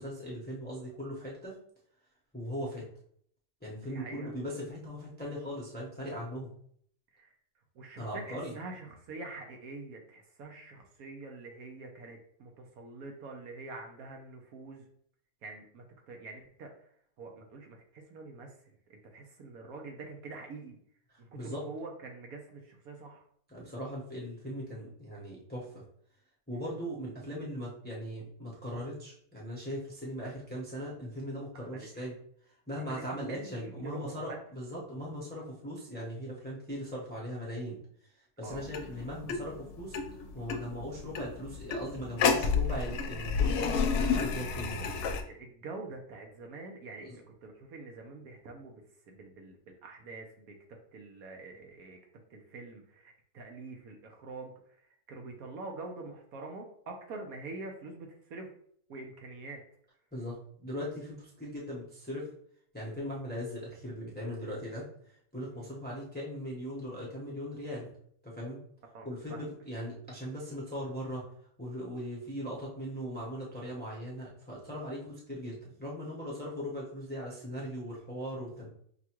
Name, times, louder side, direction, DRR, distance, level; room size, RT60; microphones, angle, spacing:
voice 1, 0.0-1.5 2.3-2.9 3.6-6.5 8.0-8.5 21.1-21.6 23.5-25.8 26.5-32.2 32.7-37.8 38.4-40.0 40.3-44.9 47.0-47.2 60.1-62.3 62.7-67.9 68.2-68.6 69.0-71.2 71.6-78.7, equal, 10° left, -5 dB, 0.7 m, -39 dB
voice 2, 3.8-4.3 7.1-7.3 7.8-14.8 15.4-16.7 17.2-18.5 18.9-20.8 21.2-23.2 30.2-30.3 31.5-32.0 32.7-34.4 38.4-38.7 45.3-52.0 52.3-54.5 55.1-58.5 58.9-59.6 65.5-65.7 68.9-69.4, right 3 dB, 70° right, 2 dB, 1.0 m, -45 dB
sound 1, 38.5-45.2, left 5 dB, 80° left, 1.1 m, -31 dB
6.0 x 2.2 x 2.9 m, 0.64 s
omnidirectional pair, 1.7 m